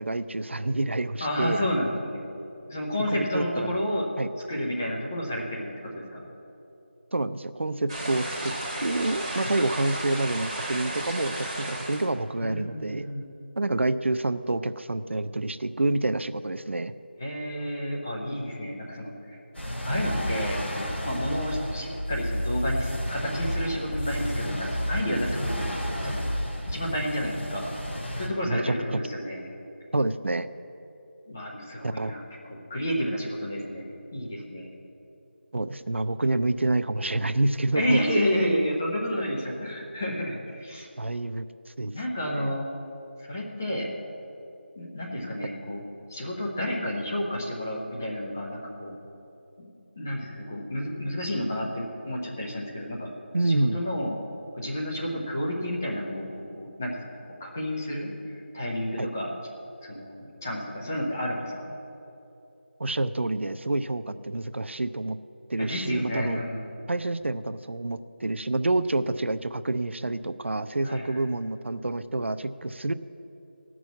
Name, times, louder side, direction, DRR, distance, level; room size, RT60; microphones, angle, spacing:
voice 1, 0.0-1.6 3.1-3.8 4.2-4.3 7.1-8.5 8.8-13.1 13.6-16.9 28.5-28.7 29.9-30.5 31.8-32.1 35.5-38.0 41.0-41.4 41.8-42.0 42.2-42.5 53.3-53.8 59.0-59.1 62.8-65.2 65.5-66.4 66.9-72.9, right 2 dB, 85° right, 12 dB, 0.6 m, -28 dB
voice 2, 1.2-2.2 2.7-4.1 4.5-6.2 9.4-9.5 12.4-13.2 17.2-19.4 19.8-25.6 26.0-26.3 26.7-27.7 28.2-29.4 31.3-32.2 32.5-34.7 37.7-40.9 41.9-42.7 43.2-43.9 44.7-45.8 46.1-48.9 50.0-53.1 53.4-54.2 54.5-56.3 56.5-59.3 59.8-61.7 65.6-66.7 70.8-71.2, equal, 15° left, -3 dB, 0.8 m, -31 dB
sound 1, 7.9-12.1, right 1 dB, 20° right, 1.6 m, -33 dB
sound 2, 19.5-28.3, equal, 85° left, 3.5 m, -31 dB
14.5 x 6.2 x 8.3 m, 3.0 s
figure-of-eight pair, 180°, 6 cm